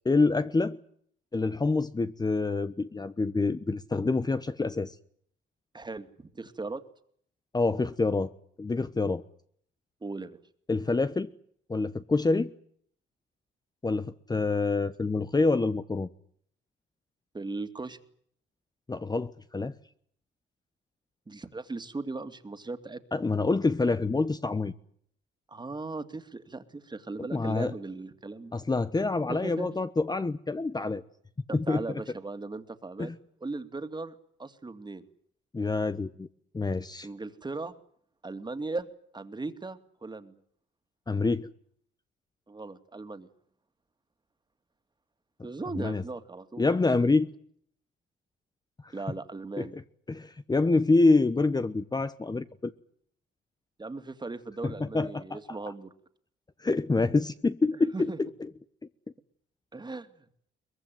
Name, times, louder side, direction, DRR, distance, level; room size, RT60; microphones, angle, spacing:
voice 1, 0.0-0.8 1.3-5.0 7.5-8.3 8.6-9.2 10.7-11.3 11.7-12.5 13.8-16.1 18.9-19.7 23.1-24.7 27.3-27.7 28.5-31.0 31.5-31.8 33.0-33.1 35.5-36.3 36.5-37.1 41.1-41.5 45.7-46.0 46.6-47.3 48.8-48.9 49.6-49.7 50.1-52.7 54.6-55.4 56.6-57.9 58.2-58.3, left 3 dB, 20° left, 1.1 m, -26 dB
voice 2, 5.7-6.8 10.0-10.4 17.3-18.0 21.3-23.0 25.5-28.6 29.3-29.7 31.5-33.1 33.4-35.0 37.0-37.7 38.2-38.9 39.1-40.4 42.5-43.3 45.4-46.7 48.9-49.8 53.8-55.9 57.9-58.2 59.7-60.3, right 3 dB, 20° right, 2.6 m, -38 dB
23.0 x 21.0 x 9.3 m
cardioid pair, 90°, 20 cm